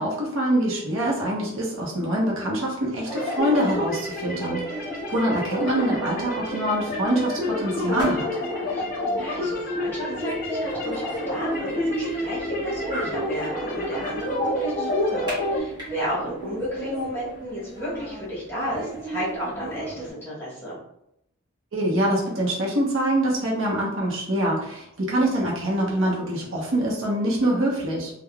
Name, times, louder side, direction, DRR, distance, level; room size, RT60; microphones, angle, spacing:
voice 1, 0.0-4.6 5.1-8.3 21.7-28.1, right 1 dB, 70° right, -3 dB, 0.8 m, -24 dB
sound 1, 3.1-15.6, left 1 dB, 40° left, 0.6 m, -29 dB
sound 2, 3.4-20.1, right 2 dB, 20° right, 1.2 m, -37 dB
voice 2, 9.2-20.8, equal, 10° left, -8 dB, 1.3 m, -32 dB
3.5 x 2.2 x 2.2 m, 0.78 s
head